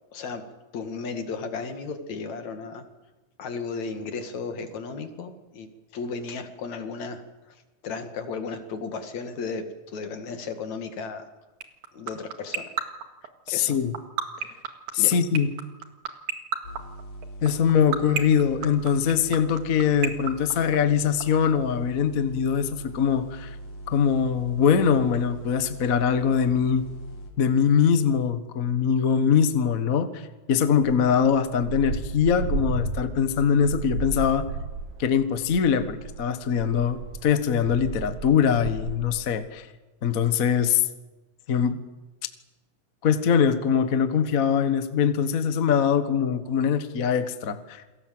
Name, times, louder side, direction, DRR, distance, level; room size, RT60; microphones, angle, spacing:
voice 1, 0.1-0.4 0.7-2.8 3.4-5.7 5.9-11.3 11.9-12.7 13.5-13.8 15.0-15.2, left 4 dB, 70° left, 7 dB, 3.4 m, -34 dB
sound 1, 11.6-21.2, right 9 dB, 85° right, 3.3 m, -28 dB
voice 2, 13.5-13.9 14.9-15.5 17.4-23.5 23.9-26.9 27.4-34.5 35.0-39.7 40.0-40.9 41.5-41.8 43.0-47.8, left 7 dB, 40° left, 10 dB, 1.2 m, -22 dB
sound 2, 16.6-27.3, right 1 dB, 90° left, 5.6 m, -41 dB
sound 3, 30.7-39.2, right 3 dB, 70° right, 3.8 m, -34 dB
28.5 x 22.0 x 7.8 m, 1.1 s
omnidirectional pair, 3.4 m